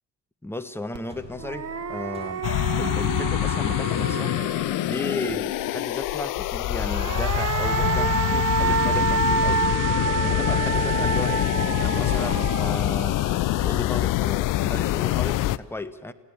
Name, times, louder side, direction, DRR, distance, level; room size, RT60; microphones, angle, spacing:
voice 1, 0.4-2.5 2.8-4.3 4.8-9.6 10.2-13.2 13.6-16.1, left 2 dB, 5° left, 9 dB, 1.2 m, -34 dB
sound 1, 0.9-1.0 1.4-5.1 6.7-14.0, right 5 dB, 30° right, 1.2 m, -28 dB
sound 2, 1.0-10.5, left 2 dB, 10° right, 6.3 m, -47 dB
sound 3, 2.4-15.6, left 16 dB, 45° left, 0.6 m, -25 dB
28.0 x 16.5 x 7.5 m, 1.3 s
figure-of-eight pair, 50°, 48 cm